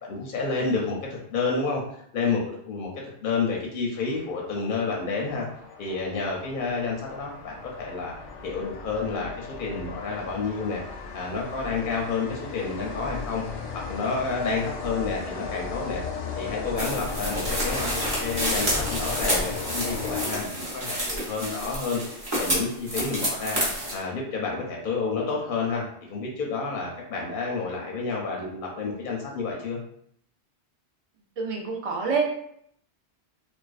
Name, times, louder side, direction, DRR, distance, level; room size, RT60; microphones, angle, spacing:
voice 1, 0.0-2.9 3.2-5.5 5.8-8.1 8.4-10.8 11.1-13.4 13.7-16.0 16.3-22.0 22.4-23.6 23.9-29.8, left 4 dB, 60° left, -1 dB, 0.6 m, -30 dB
sound 1, 4.0-20.8, left 5 dB, 85° left, 0.9 m, -37 dB
sound 2, 16.8-24.0, equal, 30° right, 0.7 m, -29 dB
voice 2, 31.4-32.2, right 5 dB, 60° right, 1 dB, 0.3 m, -26 dB
2.4 x 2.1 x 2.3 m, 0.69 s
omnidirectional pair, 1.2 m